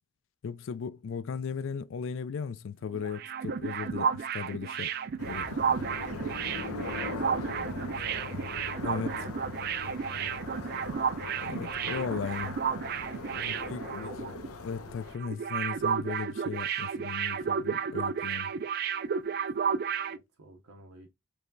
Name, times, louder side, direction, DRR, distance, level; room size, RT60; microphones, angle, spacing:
voice 1, 0.4-4.9 5.2-5.6 8.8-9.3 11.4-12.5 13.3-14.3 14.6-18.5, left 6 dB, 60° left, 0.3 m, -37 dB
sound 1, 2.9-14.5 14.7-14.9 15.2-20.2, right 7 dB, 45° right, 0.3 m, -32 dB
sound 2, 5.2-15.2, left 4 dB, 90° left, 0.8 m, -40 dB
voice 2, 5.7-8.5 10.1-11.4 11.8-12.3 13.3-14.3 20.1-21.1, right 3 dB, 85° right, 0.7 m, -48 dB
4.7 x 3.1 x 2.6 m
head